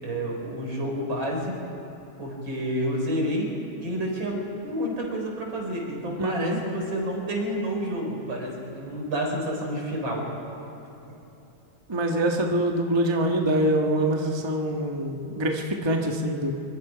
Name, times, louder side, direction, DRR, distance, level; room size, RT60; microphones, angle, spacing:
voice 1, 0.0-1.5 2.2-3.5 3.8-10.3, equal, 70° right, -1 dB, 4.9 m, -29 dB
voice 2, 6.2-6.6 11.9-16.5, right 1 dB, 15° right, 1 dB, 1.2 m, -25 dB
25.5 x 24.0 x 5.2 m, 3.0 s
omnidirectional pair, 2.2 m